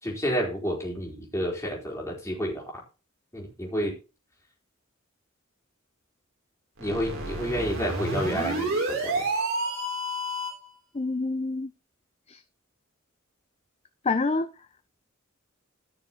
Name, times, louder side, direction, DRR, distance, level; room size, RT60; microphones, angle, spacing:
voice 1, 0.0-2.8 3.3-4.0 6.8-9.3, equal, 15° left, 3.7 m, -30 dB
sound 1, 6.8-10.7, right 2 dB, 70° right, 3.2 m, -29 dB
voice 2, 10.9-11.7 12.3-12.4 14.0-14.5, left 3 dB, 30° left, 0.5 m, -27 dB
16.0 x 6.4 x 2.9 m
head